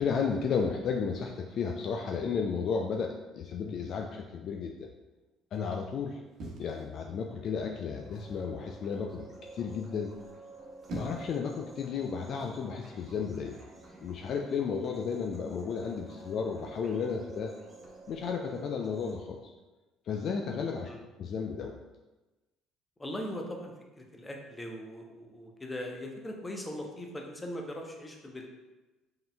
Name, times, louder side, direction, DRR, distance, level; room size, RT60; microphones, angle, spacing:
voice 1, 0.0-4.9 5.5-6.2 6.6-9.3 9.5-10.1 10.9-13.6 14.0-17.5 18.1-19.4 20.1-20.9 21.2-21.7, left 6 dB, 50° left, 2 dB, 0.3 m, -33 dB
sound 1, 6.4-7.4 8.1-8.5 10.5-11.4 12.4-12.6, right 1 dB, 55° right, 1.1 m, -43 dB
sound 2, 7.9-19.1, right 2 dB, 25° right, 1.3 m, -50 dB
voice 2, 23.0-28.5, left 1 dB, 20° left, 1 dB, 0.9 m, -40 dB
5.3 x 3.7 x 2.3 m, 1.1 s
hypercardioid pair, 55°, 0 cm